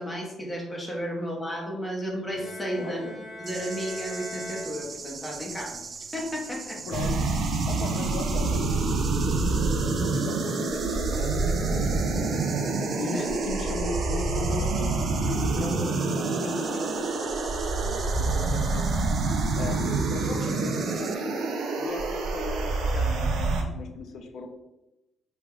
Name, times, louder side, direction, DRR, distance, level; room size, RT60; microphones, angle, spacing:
voice 1, 0.0-3.0 3.4-5.8 6.1-6.8 13.1-13.2, equal, 15° left, -1 dB, 1.2 m, -33 dB
Bowed string instrument, 2.3-5.5, left 1 dB, 45° left, 1.4 m, -41 dB
voice 2, 2.8-3.2 6.8-7.3 7.7-12.5 13.0-17.3 17.8-18.9 19.5-24.5, left 3 dB, 70° left, 5 dB, 0.6 m, -37 dB
sound 1, 3.5-21.1, right 5 dB, 45° right, 0.4 m, -40 dB
sound 2, 6.9-23.6, right 3 dB, 80° right, 0.7 m, -27 dB
4.9 x 3.4 x 2.4 m, 0.96 s
cardioid pair, 85°, 0 cm